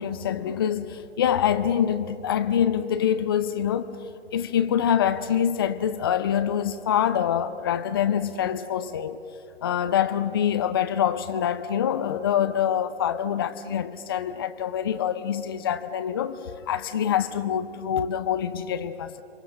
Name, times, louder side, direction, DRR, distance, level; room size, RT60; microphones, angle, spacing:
voice 1, 0.0-4.0 4.3-9.2 9.6-16.4 16.7-19.2, left 9 dB, 20° left, 0.5 m, -25 dB
28.5 x 23.5 x 6.5 m
figure-of-eight pair, 135°, 36 cm